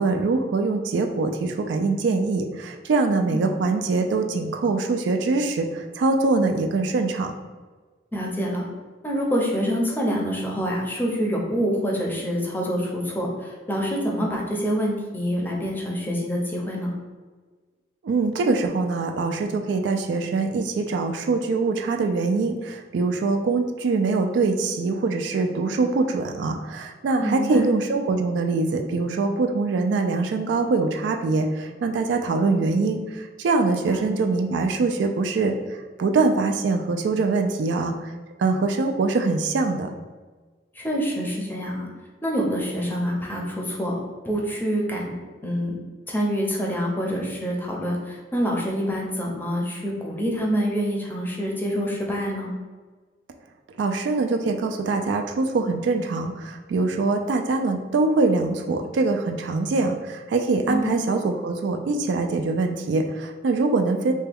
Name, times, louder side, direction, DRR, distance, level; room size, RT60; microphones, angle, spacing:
voice 1, 0.0-7.3 18.0-38.1 38.4-39.9 53.8-64.1, right 3 dB, 70° right, 4 dB, 0.3 m, -23 dB
voice 2, 8.1-8.6 9.0-16.9 27.2-27.7 33.9-34.0 40.7-41.9 42.2-43.9 44.2-45.2 45.4-45.8 46.1-52.5 60.7-61.0, equal, 10° left, -2 dB, 0.6 m, -26 dB
3.4 x 2.2 x 3.4 m, 1.4 s
head